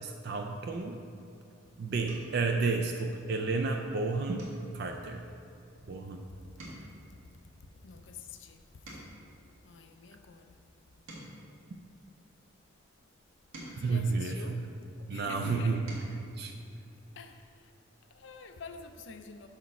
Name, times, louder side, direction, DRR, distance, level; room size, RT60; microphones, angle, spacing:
voice 1, 0.0-1.0 1.8-4.5 4.7-5.2 5.9-6.2 13.7-14.4 15.1-15.8 16.4-16.5, right 4 dB, 50° right, 0.4 m, -31 dB
sound 1, 2.0-2.5 3.0-3.3 3.6-3.8 4.3-6.2 6.4-9.4 10.0-12.5 13.1-15.0 15.5-16.2 17.6-17.7 18.0-18.2, right 1 dB, 90° right, 1.7 m, -51 dB
voice 2, 7.6-9.1 9.6-10.6 13.8-14.6 15.1-15.9 17.1-17.7 18.1-19.5, left 5 dB, 60° left, 0.4 m, -47 dB
6.1 x 4.2 x 5.9 m
head